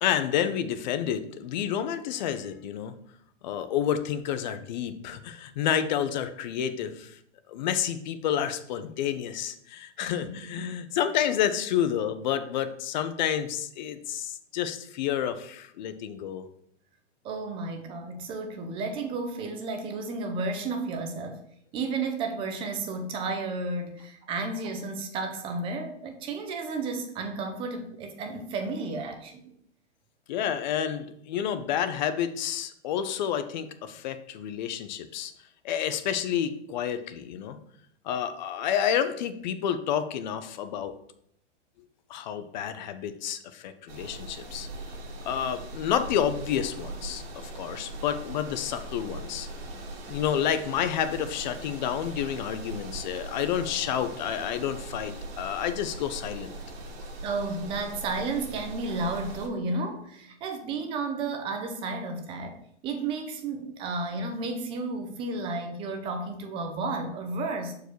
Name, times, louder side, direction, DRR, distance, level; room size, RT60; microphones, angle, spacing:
voice 1, 0.0-2.9 3.4-7.2 7.5-16.4 30.3-35.3 35.6-37.6 38.0-41.0 42.1-44.7 45.2-47.2 47.6-49.5 50.1-56.5, left 9 dB, 40° left, 10 dB, 0.6 m, -29 dB
voice 2, 10.0-10.8 17.2-21.4 21.7-29.5 57.2-62.6 62.8-67.7, right 3 dB, 15° right, 5 dB, 0.6 m, -32 dB
sound 1, 43.9-59.5, right 2 dB, 50° right, 2.0 m, -40 dB
6.6 x 4.7 x 4.5 m, 0.70 s
hypercardioid pair, 150°, 35 cm